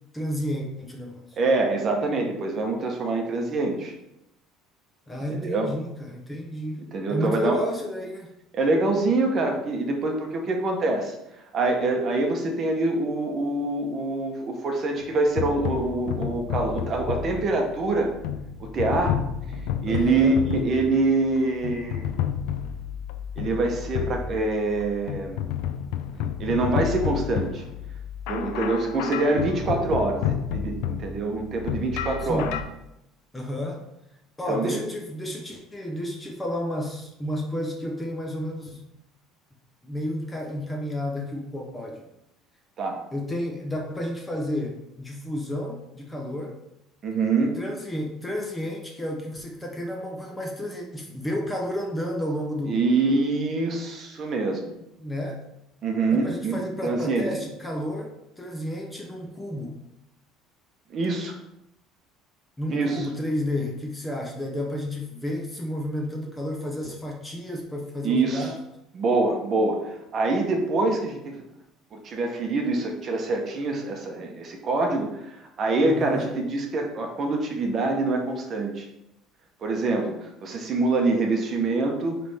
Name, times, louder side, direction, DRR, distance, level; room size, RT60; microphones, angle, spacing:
voice 1, 0.1-1.4 5.1-6.8 7.1-8.3 19.8-20.4 32.2-32.5 33.3-33.8 34.4-38.9 39.8-42.1 43.1-46.5 47.6-52.8 55.0-55.4 56.1-59.8 62.6-68.6 75.8-76.3, left 1 dB, 10° left, 0 dB, 0.7 m, -31 dB
voice 2, 1.4-3.9 5.3-5.7 6.9-7.6 8.5-11.1 11.5-18.1 18.6-19.2 19.8-22.1 23.4-25.4 26.4-27.6 28.3-30.2 30.5-32.5 34.5-34.8 42.8-43.0 47.0-47.6 52.7-54.7 55.8-57.3 60.9-61.3 62.7-63.1 68.0-68.5 68.9-71.4 71.9-78.9 79.6-82.2, right 3 dB, 30° right, 3 dB, 0.9 m, -25 dB
sound 1, 15.0-32.6, left 9 dB, 85° left, 0.5 m, -31 dB
9.3 x 3.4 x 3.4 m, 0.86 s
cardioid pair, 170°, 0 cm